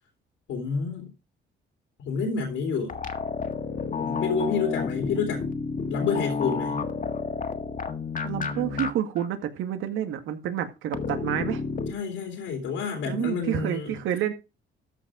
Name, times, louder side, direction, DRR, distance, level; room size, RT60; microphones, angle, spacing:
voice 1, 0.5-1.1 2.0-3.0 4.0-5.4 5.9-6.8 11.9-14.0, left 5 dB, 80° left, 3.0 m, -29 dB
sound 1, 2.9-8.9 9.2-9.3 10.9-11.9, left 5 dB, 45° left, 1.7 m, -30 dB
voice 2, 8.2-11.6 13.1-14.3, right 10 dB, 90° right, 1.9 m, -29 dB
14.0 x 5.1 x 5.0 m
cardioid pair, 90°, 20 cm